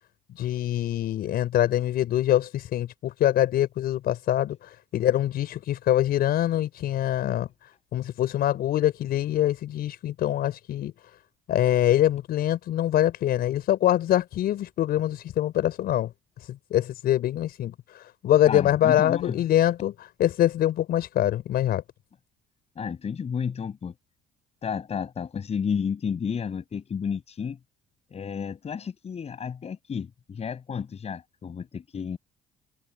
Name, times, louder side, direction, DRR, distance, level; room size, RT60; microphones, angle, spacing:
voice 1, 0.4-10.9 11.5-16.1 16.4-21.8, left 12 dB, 65° left, 5.3 m, -24 dB
voice 2, 18.5-19.4 22.8-23.9 24.6-27.6 28.1-32.2, left 6 dB, 40° left, 6.2 m, -31 dB
cardioid pair, 110°, 17 cm